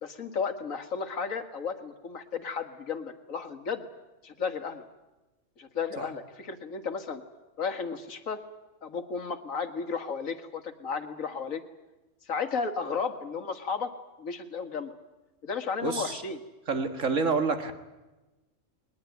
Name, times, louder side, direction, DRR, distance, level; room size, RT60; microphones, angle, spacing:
voice 1, 0.0-3.9 4.2-4.8 5.6-7.2 7.6-8.4 8.8-11.6 12.3-13.9 14.2-15.0 15.4-16.4, left 5 dB, 90° left, 8 dB, 2.1 m, -33 dB
voice 2, 15.8-16.2 16.7-17.7, right 4 dB, 75° right, 7 dB, 2.2 m, -28 dB
21.0 x 20.0 x 9.3 m, 1.1 s
omnidirectional pair, 1.3 m